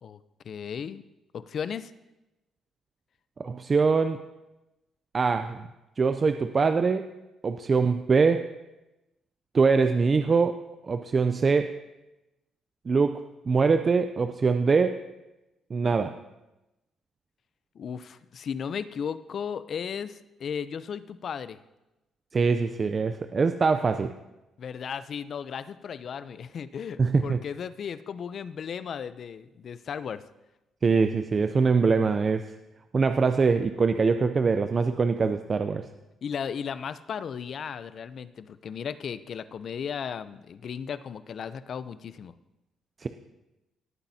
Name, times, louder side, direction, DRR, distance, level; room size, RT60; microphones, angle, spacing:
voice 1, 0.4-1.0 1.3-1.9 17.8-21.6 24.6-30.2 36.2-42.3, left 7 dB, 55° left, 14 dB, 0.5 m, -35 dB
voice 2, 3.4-4.2 5.1-5.7 6.0-7.1 7.4-8.5 9.5-10.6 10.8-11.8 12.9-15.0 15.7-16.1 22.3-24.1 27.0-27.4 30.8-32.5 32.9-35.8 43.0-43.1, right 4 dB, 40° right, 8 dB, 0.5 m, -23 dB
18.0 x 8.8 x 2.8 m, 0.98 s
cardioid pair, 90°, 0 cm